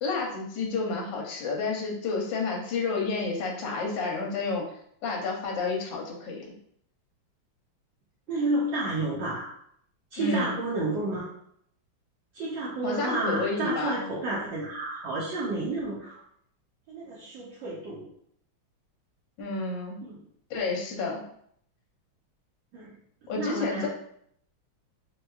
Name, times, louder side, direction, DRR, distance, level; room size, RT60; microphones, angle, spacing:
voice 1, 0.0-4.6 5.0-6.5 10.2-10.5 12.8-14.0 19.4-20.0 20.5-21.2 23.3-23.9, left 4 dB, 70° left, -1 dB, 1.3 m, -30 dB
voice 2, 8.3-9.5 10.1-11.3 12.3-16.2 16.9-18.1 20.0-20.2 22.7-22.9 23.4-23.9, right 2 dB, 70° right, -6 dB, 1.3 m, -31 dB
4.3 x 2.3 x 2.3 m, 0.68 s
omnidirectional pair, 2.2 m